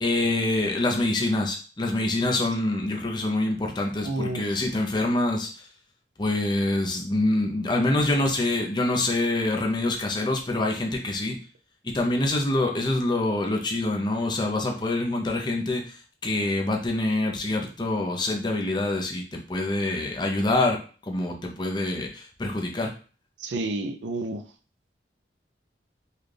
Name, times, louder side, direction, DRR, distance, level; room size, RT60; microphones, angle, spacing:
voice 1, 0.0-5.5 6.2-11.4 11.8-15.9 16.2-22.9, left 2 dB, 25° left, 2 dB, 0.6 m, -25 dB
voice 2, 4.0-4.5 23.4-24.4, right 2 dB, 85° right, 6 dB, 0.5 m, -30 dB
4.1 x 2.3 x 3.3 m, 0.37 s
head